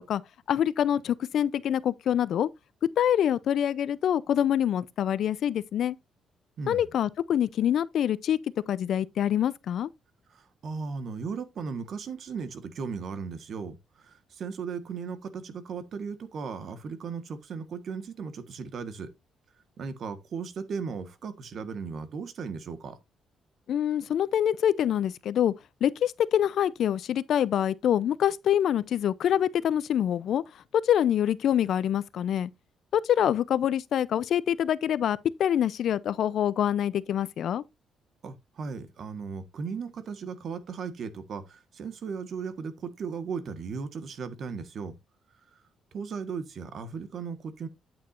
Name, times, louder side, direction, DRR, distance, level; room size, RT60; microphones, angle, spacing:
voice 1, 0.5-2.5 3.0-6.0 6.7-8.4 8.7-9.9 23.7-25.5 25.8-30.4 30.8-32.5 32.9-37.6, left 10 dB, 70° left, 0.6 m, -25 dB
voice 2, 10.3-19.1 19.8-23.0 38.2-44.9 45.9-47.7, right 5 dB, 60° right, 1.5 m, -36 dB
8.9 x 8.5 x 2.6 m
cardioid pair, 90°, 0 cm